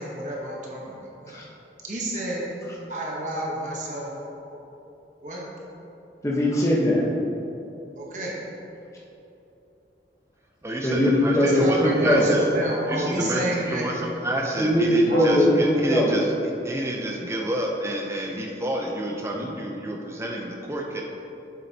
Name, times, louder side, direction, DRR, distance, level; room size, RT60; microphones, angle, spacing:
voice 1, 0.0-1.4 1.8-2.4 2.9-4.1 5.2-5.4 8.0-8.3 11.4-13.8 15.1-15.2, right 1 dB, 45° right, -4 dB, 1.1 m, -30 dB
voice 2, 6.2-7.0 10.8-12.3 14.6-16.2 19.3-19.5, equal, 20° left, -5 dB, 1.1 m, -20 dB
voice 3, 10.6-12.4 12.9-16.3 16.6-21.0, right 1 dB, 15° right, 0 dB, 0.6 m, -29 dB
7.6 x 7.4 x 2.8 m, 2.9 s
head